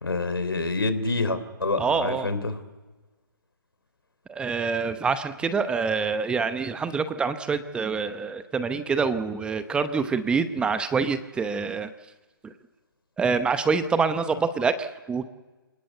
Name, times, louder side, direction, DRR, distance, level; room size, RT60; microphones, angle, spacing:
voice 1, 0.0-2.6, left 3 dB, 80° left, 12 dB, 3.4 m, -27 dB
voice 2, 1.8-2.3 4.3-11.9 12.4-12.5 13.2-15.3, right 5 dB, 10° right, 11 dB, 0.8 m, -26 dB
27.5 x 19.0 x 8.1 m, 1.3 s
figure-of-eight pair, 140°, 12 cm